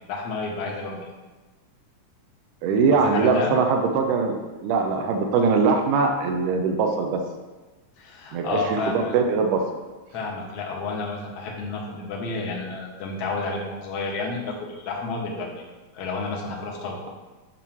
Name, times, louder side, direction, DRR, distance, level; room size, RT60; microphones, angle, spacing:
voice 1, 0.1-1.1 2.9-3.6 8.0-9.1 10.1-15.5 15.9-17.0, left 3 dB, 60° left, -1 dB, 1.9 m, -30 dB
voice 2, 2.6-7.2 8.3-9.6, right 4 dB, 85° right, 3 dB, 2.2 m, -22 dB
9.1 x 3.1 x 5.7 m, 1.2 s
omnidirectional pair, 3.6 m